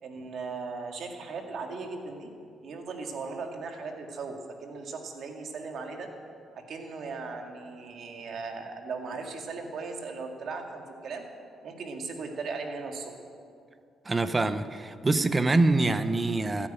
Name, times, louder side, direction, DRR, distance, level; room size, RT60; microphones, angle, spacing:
voice 1, 0.0-2.3 2.6-6.1 6.5-11.3 11.6-13.1, right 4 dB, 65° right, 3 dB, 2.2 m, -38 dB
voice 2, 14.1-16.7, right 2 dB, 25° right, 12 dB, 0.9 m, -25 dB
15.0 x 9.9 x 9.0 m, 2.3 s
cardioid pair, 90°, 0 cm